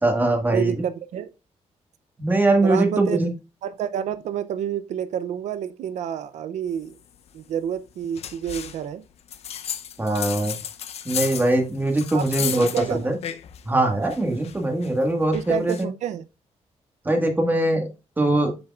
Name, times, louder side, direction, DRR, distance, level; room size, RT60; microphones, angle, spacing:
voice 1, 0.0-0.8 2.2-3.3 10.0-10.5 11.0-13.2 13.6-15.7 17.0-17.9 18.2-18.5, right 2 dB, 15° right, 1.5 m, -21 dB
voice 2, 0.5-1.3 2.6-3.2 3.6-6.9 7.3-9.0 12.1-13.1 15.3-16.2, right 9 dB, 90° right, 0.5 m, -29 dB
sound 1, 8.1-8.8 9.3-13.7 14.0-15.8, left 9 dB, 65° left, 0.6 m, -33 dB
8.0 x 6.5 x 2.4 m
wide cardioid pair, 145°, 12 cm